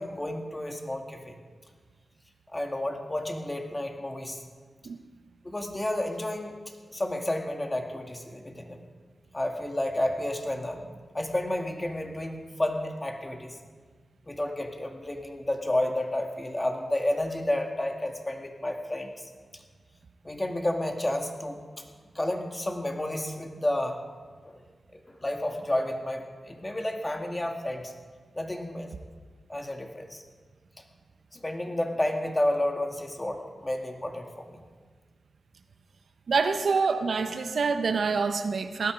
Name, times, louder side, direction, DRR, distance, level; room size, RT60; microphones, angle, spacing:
voice 1, 0.0-1.3 2.5-4.4 5.4-6.6 6.9-8.8 9.3-13.6 14.3-19.6 20.2-21.6 22.1-24.0 24.4-24.6 24.9-27.9 28.3-28.9 29.5-30.2 31.3-34.6, left 1 dB, 20° left, 3 dB, 2.2 m, -31 dB
voice 2, 36.3-38.9, right 4 dB, 75° right, 8 dB, 0.9 m, -26 dB
18.0 x 12.5 x 5.2 m, 1.5 s
cardioid pair, 60°, 0 cm